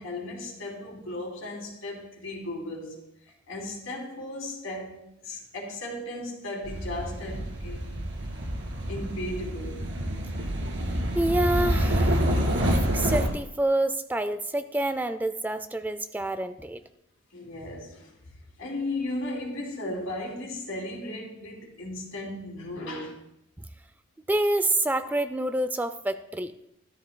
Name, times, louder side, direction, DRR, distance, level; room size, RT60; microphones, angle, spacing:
voice 1, 0.0-3.0 3.5-7.9 8.9-9.8 17.3-18.1 18.6-23.2, left 1 dB, 85° left, 3.0 m, -36 dB
sound 1, 6.6-13.3, equal, 65° right, 2.1 m, -27 dB
voice 2, 11.2-12.3 12.9-16.8 24.3-26.5, right 1 dB, 10° right, 0.3 m, -27 dB
13.5 x 13.0 x 2.2 m
head